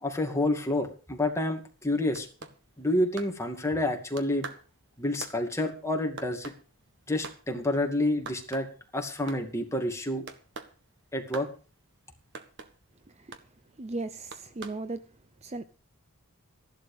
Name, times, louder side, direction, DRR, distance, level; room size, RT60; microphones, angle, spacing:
voice 1, 0.0-2.3 2.8-4.5 5.0-6.5 7.1-8.7 8.9-10.2 11.1-11.5, left 1 dB, 15° left, 2.4 m, -29 dB
sound 1, 1.8-3.9 4.2-7.4 7.7-7.8 8.1-8.9 9.1-9.7 10.3-10.8 11.3-11.5 12.3-12.7 13.3-13.5 14.3-14.8, right 4 dB, 55° right, 1.6 m, -43 dB
voice 2, 13.8-15.0 15.4-15.7, right 2 dB, 30° right, 0.6 m, -36 dB
14.0 x 11.5 x 5.1 m
head